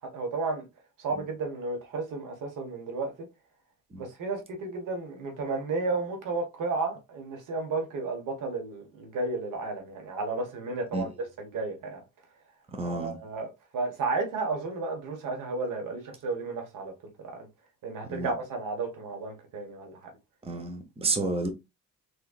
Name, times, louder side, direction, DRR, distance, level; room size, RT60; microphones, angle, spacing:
voice 1, 0.1-0.7 1.0-3.3 4.0-11.1 11.4-12.0 12.8-16.9 17.2-17.4 17.8-19.9 21.2-21.3, right 3 dB, 75° right, 1.3 m, -33 dB
voice 2, 12.7-13.2 18.1-18.3 20.4-21.5, right 2 dB, 20° right, 0.9 m, -30 dB
3.7 x 3.2 x 2.4 m
cardioid pair, 90°, 32 cm